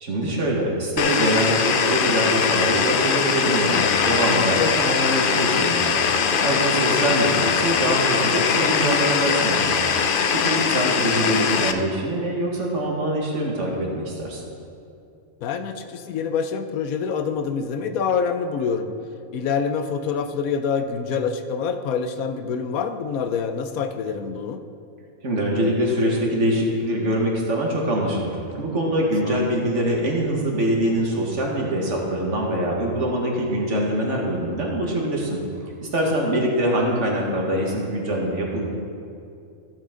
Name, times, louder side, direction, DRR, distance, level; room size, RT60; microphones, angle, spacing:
voice 1, 0.0-9.7 10.0-14.4 25.2-35.4 35.8-38.7, right 1 dB, 60° right, -1 dB, 1.9 m, -24 dB
sound 1, 1.0-11.7, left 6 dB, 55° left, 0.6 m, -21 dB
voice 2, 6.5-6.8 15.4-18.9 19.3-24.6 29.2-29.4 36.1-36.4, left 6 dB, 85° left, 9 dB, 1.1 m, -26 dB
14.5 x 7.8 x 3.8 m, 2.5 s
omnidirectional pair, 1.4 m